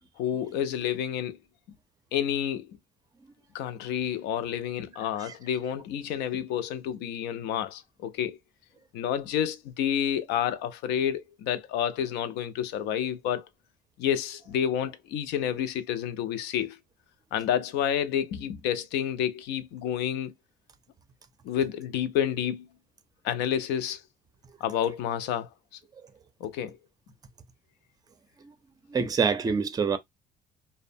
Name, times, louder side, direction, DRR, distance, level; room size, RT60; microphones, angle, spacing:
voice 1, 0.2-1.4 2.1-2.7 3.5-8.4 8.9-13.5 14.0-16.8 17.3-20.3 21.4-22.7 23.2-24.0 24.6-25.5 26.4-26.8, left 9 dB, 90° left, 0.4 m, -29 dB
voice 2, 28.9-30.0, right 5 dB, 20° right, 0.4 m, -26 dB
2.7 x 2.0 x 2.5 m
cardioid pair, 110°, 17 cm